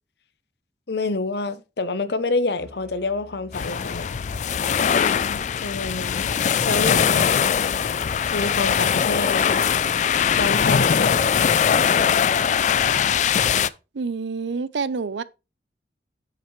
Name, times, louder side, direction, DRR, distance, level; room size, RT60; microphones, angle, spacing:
voice 1, 0.9-4.1 4.9-6.3 6.6-7.4 8.3-9.6 10.4-11.5, left 3 dB, 65° left, 0.8 m, -27 dB
Musical instrument, 2.6-8.3, equal, ahead, 1.0 m, -47 dB
sound 1, 3.5-13.7, left 7 dB, 40° left, 0.3 m, -21 dB
sound 2, 5.2-13.4, equal, 40° right, 2.4 m, -52 dB
voice 2, 13.9-15.2, right 4 dB, 80° right, 0.5 m, -27 dB
8.8 x 7.4 x 3.1 m
head